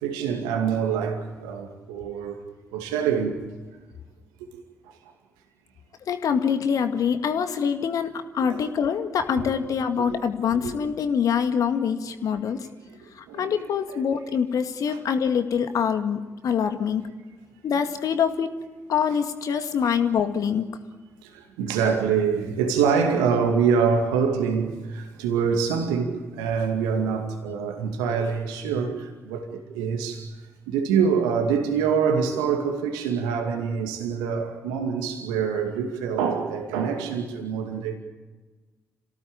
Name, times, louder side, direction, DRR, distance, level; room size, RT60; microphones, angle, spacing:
voice 1, 0.0-2.4 2.7-3.4 8.5-8.6 10.1-10.2 13.3-13.6 14.9-15.0 21.2-30.2 30.7-37.9, right 6 dB, 75° right, 4 dB, 2.4 m, -25 dB
voice 2, 6.1-12.7 13.1-17.0 17.6-18.6 18.9-20.7, left 7 dB, 55° left, 8 dB, 2.1 m, -25 dB
28.0 x 18.0 x 8.9 m, 1.3 s
figure-of-eight pair, 40°, 7 cm